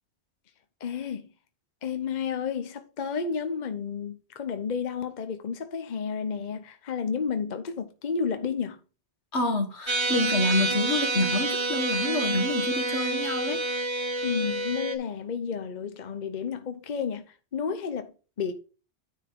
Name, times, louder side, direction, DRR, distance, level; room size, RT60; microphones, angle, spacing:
voice 1, 0.8-1.3 1.8-8.8 14.2-18.5, left 6 dB, 45° left, 0.9 m, -31 dB
voice 2, 9.3-13.6, left 2 dB, 75° left, 1.9 m, -27 dB
sound 1, 9.9-15.0, right 2 dB, 30° right, 0.8 m, -28 dB
9.7 x 4.4 x 4.5 m
omnidirectional pair, 1.1 m